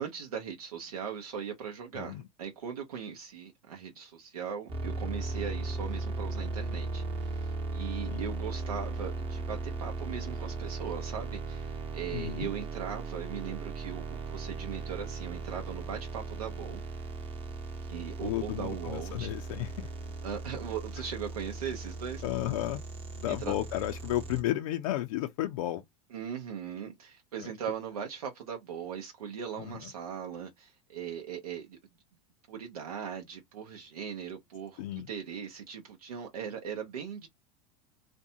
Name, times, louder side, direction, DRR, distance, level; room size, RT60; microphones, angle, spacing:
voice 1, 0.0-16.8 17.9-19.3 20.2-22.2 23.3-23.5 26.1-31.8 32.5-37.3, right 7 dB, 90° right, 0.7 m, -39 dB
sound 1, 4.7-24.4, right 3 dB, 30° right, 0.8 m, -37 dB
voice 2, 12.1-12.5 18.2-19.9 22.2-22.8 23.2-25.8 29.6-29.7 34.8-35.1, left 14 dB, 70° left, 0.4 m, -33 dB
2.5 x 2.2 x 2.7 m
hypercardioid pair, 100°, 18 cm